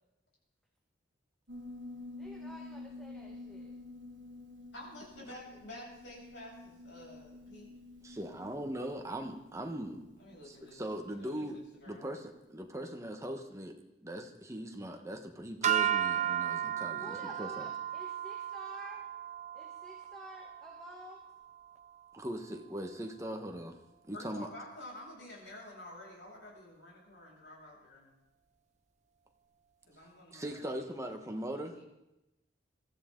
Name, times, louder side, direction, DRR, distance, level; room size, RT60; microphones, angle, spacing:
Piano, 1.5-12.2, left 2 dB, 70° right, 1.6 m, -50 dB
voice 1, 2.2-3.7 17.0-19.1 19.5-21.2, equal, 5° left, -2 dB, 1.5 m, -50 dB
voice 2, 4.7-7.7 10.2-12.1 24.1-28.1 29.9-31.8, left 1 dB, 70° left, -4 dB, 7.4 m, -50 dB
voice 3, 8.0-10.0 10.4-11.6 11.9-13.7 14.0-17.7 22.1-23.8 24.1-24.5 30.3-31.7, right 1 dB, 15° right, 3 dB, 1.3 m, -40 dB
sound 1, 15.6-22.0, right 10 dB, 40° right, 0.7 m, -35 dB
22.0 x 14.0 x 3.9 m, 0.95 s
head